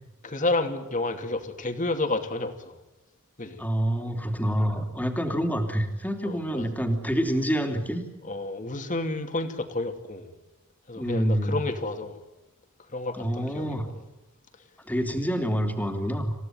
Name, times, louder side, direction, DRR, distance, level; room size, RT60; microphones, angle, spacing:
voice 1, 0.2-2.8 3.4-3.6 5.3-5.4 6.2-6.7 8.2-10.3 10.9-12.2 12.9-14.0, left 2 dB, 40° left, 7 dB, 2.8 m, -30 dB
voice 2, 3.6-8.0 11.0-11.6 13.2-13.9 14.9-16.3, equal, 10° left, 4 dB, 3.1 m, -27 dB
28.0 x 16.5 x 9.4 m, 1.1 s
head